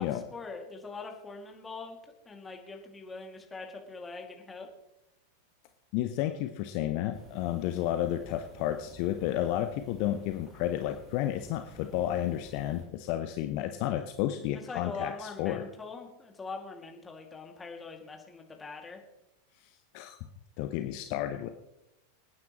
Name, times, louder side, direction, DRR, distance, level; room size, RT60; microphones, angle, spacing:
voice 1, 0.0-2.0 2.3-4.7 14.5-19.0, left 4 dB, 15° left, 2 dB, 2.4 m, -42 dB
voice 2, 5.9-15.6 19.9-20.2 20.6-21.5, left 12 dB, 45° left, 8 dB, 0.8 m, -31 dB
sound 1, 7.1-12.9, equal, 25° right, 3.6 m, -53 dB
27.0 x 9.5 x 3.1 m, 0.90 s
figure-of-eight pair, 90°, 0 cm